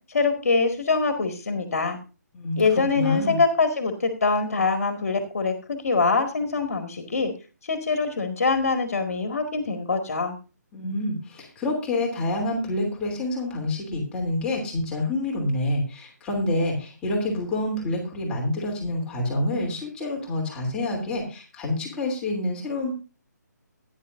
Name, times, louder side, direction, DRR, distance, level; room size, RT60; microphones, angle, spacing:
voice 1, 0.1-2.0 2.6-7.3 7.7-10.4, left 4 dB, 50° left, 6 dB, 2.0 m, -24 dB
voice 2, 2.3-3.4 10.7-22.9, left 1 dB, 10° left, -1 dB, 3.0 m, -27 dB
16.0 x 10.5 x 2.6 m, 0.34 s
figure-of-eight pair, 145°, 10 cm